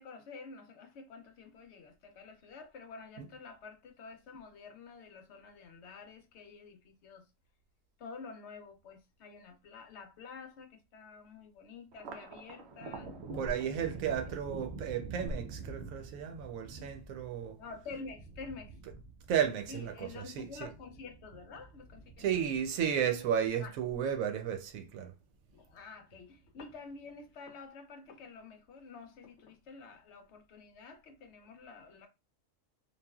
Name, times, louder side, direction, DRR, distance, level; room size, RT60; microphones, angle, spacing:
voice 1, 0.0-7.3 8.0-13.2 13.9-14.4 17.6-18.8 19.7-22.4 23.6-23.7 25.5-32.1, left 4 dB, 65° left, 0.8 m, -49 dB
Thunder, 11.9-24.6 25.0-25.8 26.1-27.0, right 4 dB, 65° right, 0.8 m, -48 dB
voice 2, 13.4-17.6 19.3-20.5 22.2-25.1, right 8 dB, 85° right, 1.0 m, -33 dB
3.1 x 2.4 x 2.3 m
omnidirectional pair, 1.4 m